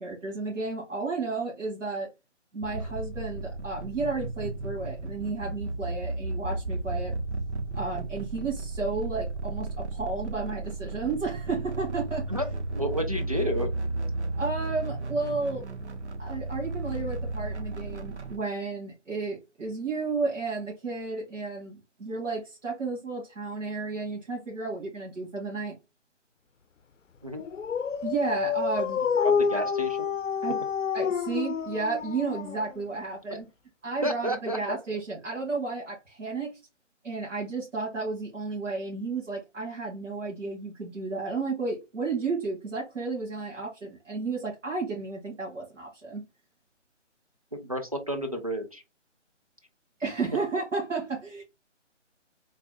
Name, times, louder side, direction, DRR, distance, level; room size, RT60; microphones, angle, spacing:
voice 1, 0.0-2.1 2.5-7.1 7.7-12.3 14.4-15.6 16.2-25.7 28.0-29.0 29.5-29.6 30.4-30.6 30.9-33.4 33.8-36.6 37.0-46.2 50.0-51.4, right 4 dB, 80° right, 1.7 m, -32 dB
sound 1, 2.6-18.4, right 2 dB, 65° right, 0.8 m, -34 dB
voice 2, 12.7-13.7 27.2-27.4 29.2-30.1 34.0-34.8 47.5-48.8, equal, 30° right, 0.4 m, -31 dB
Dog, 27.4-33.0, left 6 dB, 85° left, 0.5 m, -28 dB
3.3 x 2.1 x 4.0 m
figure-of-eight pair, 155°, 37 cm